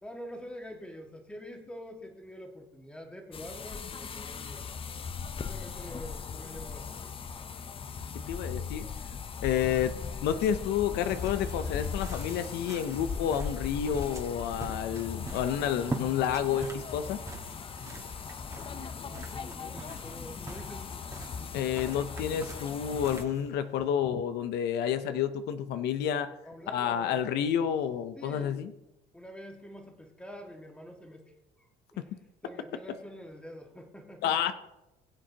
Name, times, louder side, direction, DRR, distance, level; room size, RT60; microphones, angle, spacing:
voice 1, 0.0-4.6 5.5-7.1 19.0-20.9 26.5-27.2 28.2-28.6 29.1-31.3 31.6-32.1 32.4-34.4, equal, 5° left, 2 dB, 1.7 m, -46 dB
sound 1, 3.3-23.2, left 6 dB, 30° left, 0.6 m, -39 dB
voice 2, 8.3-8.9 9.4-9.9 10.2-17.2 21.5-26.3 26.7-28.7 32.0-32.1 34.2-34.5, left 9 dB, 80° left, 10 dB, 0.6 m, -30 dB
sound 2, 11.1-23.8, right 3 dB, 20° right, 1.5 m, -45 dB
20.5 x 7.4 x 2.9 m, 0.96 s
cardioid pair, 110°, 17 cm